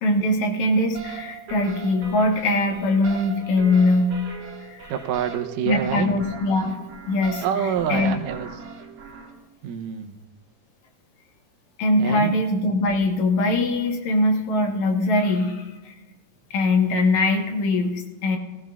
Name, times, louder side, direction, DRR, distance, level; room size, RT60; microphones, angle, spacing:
voice 1, 0.0-4.2 4.7-4.9 5.6-6.8 7.1-8.1 11.8-15.9 16.5-18.4, left 2 dB, 65° left, 2 dB, 2.5 m, -22 dB
sound 1, 0.9-9.3, right 5 dB, 55° right, 2.4 m, -39 dB
voice 2, 4.9-6.1 7.4-8.5 9.6-10.2 12.0-12.3, right 8 dB, 85° right, 6 dB, 2.3 m, -26 dB
19.0 x 15.0 x 2.4 m, 1.1 s
omnidirectional pair, 3.7 m